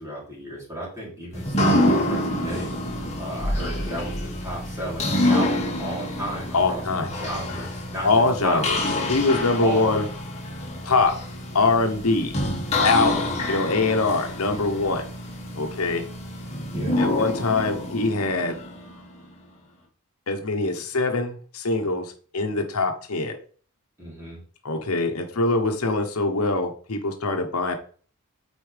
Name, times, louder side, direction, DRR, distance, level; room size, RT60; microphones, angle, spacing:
voice 1, 0.0-8.9 9.6-10.1 13.1-13.4 16.7-17.1 24.0-24.4, right 1 dB, 15° right, -6 dB, 3.4 m, -34 dB
sound 1, 1.3-19.2, left 1 dB, 30° left, 2.1 m, -27 dB
voice 2, 6.5-7.1 8.0-8.8 9.1-10.0 10.8-11.1 11.5-12.3 12.8-15.1 15.6-16.0 17.0-18.5 20.3-23.4 24.6-27.8, left 3 dB, 75° left, 5 dB, 1.0 m, -23 dB
8.4 x 4.6 x 3.4 m, 0.43 s
head